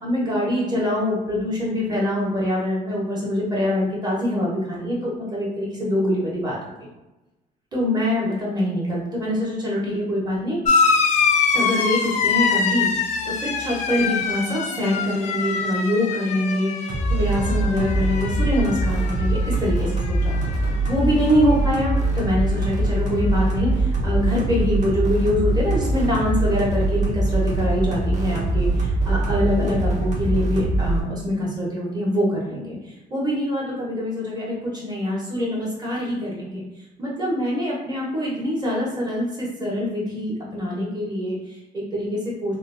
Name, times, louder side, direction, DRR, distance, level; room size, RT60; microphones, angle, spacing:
voice 1, 0.0-6.9 7.7-10.6 11.5-12.9 13.2-20.4 20.9-36.6 37.0-42.5, equal, 25° right, -5 dB, 1.2 m, -24 dB
sound 1, 10.6-19.7 19.9-20.7 21.8-21.9, left 5 dB, 45° left, 0.4 m, -24 dB
sound 2, 16.9-31.0, right 1 dB, 45° right, 0.8 m, -23 dB
3.0 x 2.1 x 2.6 m, 1.0 s
cardioid pair, 110°, 17 cm